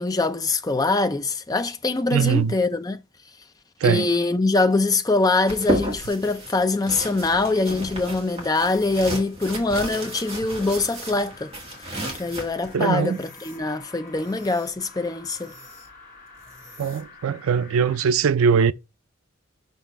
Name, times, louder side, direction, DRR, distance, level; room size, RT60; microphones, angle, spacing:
voice 1, 0.0-3.0 3.8-11.5 12.2-15.5, left 3 dB, 15° left, 0.4 m, -23 dB
voice 2, 2.1-2.6 3.8-4.1 12.7-13.2 16.8-18.7, right 6 dB, 75° right, 0.4 m, -21 dB
sound 1, 5.5-12.7, right 1 dB, 30° right, 1.5 m, -32 dB
sound 2, 8.5-17.2, left 1 dB, 10° right, 4.1 m, -51 dB
sound 3, 10.0-18.1, left 4 dB, 40° left, 1.3 m, -48 dB
5.4 x 4.1 x 4.5 m
head